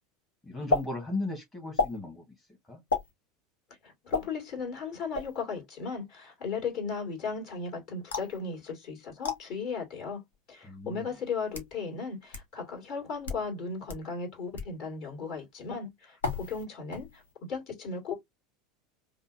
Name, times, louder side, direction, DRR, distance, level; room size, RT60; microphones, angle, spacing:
voice 1, 0.4-2.2 2.6-2.8 10.6-11.2, left 2 dB, 15° left, 1.3 m, -36 dB
sound 1, 0.7-0.8 1.7-2.0 2.9-3.1 4.1-4.3 5.1-5.4 8.1-8.4 9.2-9.4 10.3-10.4 11.3-11.7 12.3-12.4 13.1-13.4 13.9-14.0 14.6-14.7 16.2-16.6 16.9-17.3, left 3 dB, 75° left, 1.1 m, -31 dB
voice 2, 3.8-10.2 10.5-17.2 17.5-18.2, left 5 dB, 45° left, 2.0 m, -36 dB
5.3 x 2.0 x 2.5 m
figure-of-eight pair, 75°, 0 cm